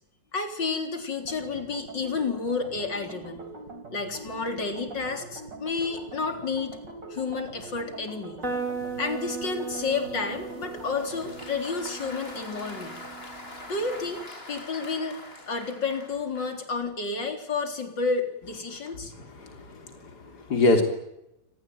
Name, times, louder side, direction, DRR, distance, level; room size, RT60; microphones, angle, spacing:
voice 1, 0.3-3.4 3.9-6.8 7.1-8.4 9.0-13.0 13.7-14.2 14.5-15.2 15.5-19.1, left 4 dB, 90° left, 6 dB, 4.5 m, -30 dB
sound 1, 1.2-11.5, right 2 dB, 80° right, 4.9 m, -43 dB
sound 2, 8.4-14.2, right 5 dB, 45° right, 4.8 m, -37 dB
Applause, 10.5-16.7, left 2 dB, 35° left, 3.9 m, -43 dB
voice 2, 18.9-20.8, left 2 dB, 60° left, 5 dB, 4.0 m, -26 dB
28.0 x 21.0 x 9.3 m, 0.87 s
omnidirectional pair, 1.9 m